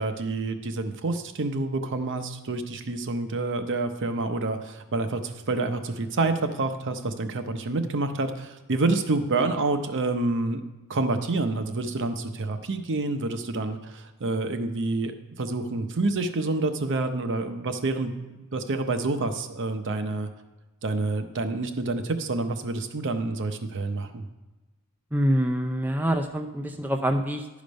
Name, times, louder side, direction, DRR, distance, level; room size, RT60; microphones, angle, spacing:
voice 1, 0.0-10.6 10.9-18.1 18.4-20.3 20.8-24.2, right 3 dB, 55° right, 8 dB, 0.7 m, -28 dB
voice 2, 25.1-27.6, equal, 10° right, 4 dB, 0.4 m, -26 dB
11.5 x 5.1 x 5.2 m, 1.1 s
head